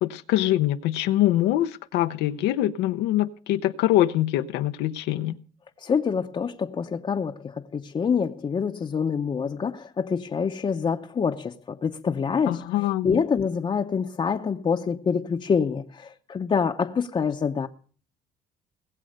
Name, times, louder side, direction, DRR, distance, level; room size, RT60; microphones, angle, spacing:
voice 1, 0.0-5.4 12.5-13.1, left 14 dB, 90° left, 0.7 m, -24 dB
voice 2, 5.8-17.7, left 6 dB, 30° left, 0.8 m, -26 dB
19.5 x 7.7 x 6.5 m
cardioid pair, 110°, 17 cm